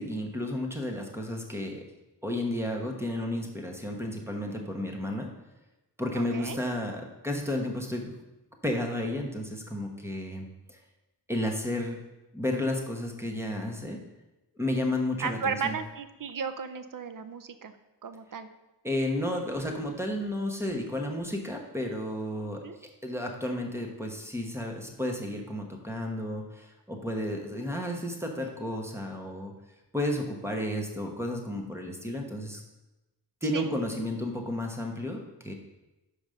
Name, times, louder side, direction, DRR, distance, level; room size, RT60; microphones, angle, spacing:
voice 1, 0.0-1.8 2.2-5.3 6.0-8.1 8.6-10.8 11.3-12.0 12.3-14.0 14.6-15.8 18.8-29.5 29.9-32.6 33.4-35.5, left 1 dB, 5° right, 2 dB, 1.2 m, -32 dB
voice 2, 6.1-6.6 15.2-17.7 18.0-18.5 22.6-22.8 33.5-33.7, right 6 dB, 50° right, 11 dB, 0.6 m, -34 dB
5.2 x 5.1 x 6.4 m, 1.0 s
wide cardioid pair, 90°, 44 cm